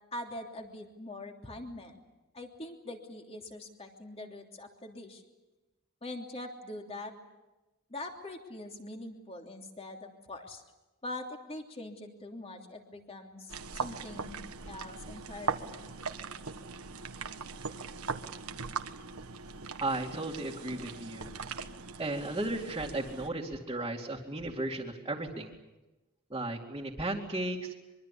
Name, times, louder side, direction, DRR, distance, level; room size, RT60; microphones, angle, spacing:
voice 1, 0.1-2.0 2.3-5.2 6.0-7.1 7.9-10.6 11.0-15.7, left 1 dB, 30° left, 3 dB, 3.1 m, -43 dB
sound 1, 13.5-23.3, right 5 dB, 85° right, 1.5 m, -40 dB
voice 2, 19.8-21.3 22.0-25.5 26.3-27.7, right 2 dB, 20° right, -4 dB, 2.4 m, -35 dB
24.0 x 24.0 x 8.5 m, 1.1 s
head